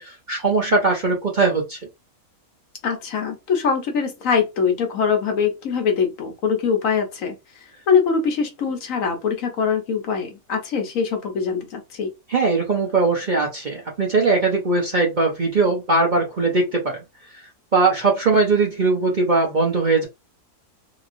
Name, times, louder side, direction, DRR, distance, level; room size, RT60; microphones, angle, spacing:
voice 1, 0.0-1.8 12.3-17.0 17.7-20.0, right 3 dB, 40° right, 0.8 m, -20 dB
voice 2, 2.8-7.4 7.9-12.1, left 6 dB, 65° left, 1.2 m, -22 dB
3.0 x 2.9 x 2.5 m
omnidirectional pair, 1.6 m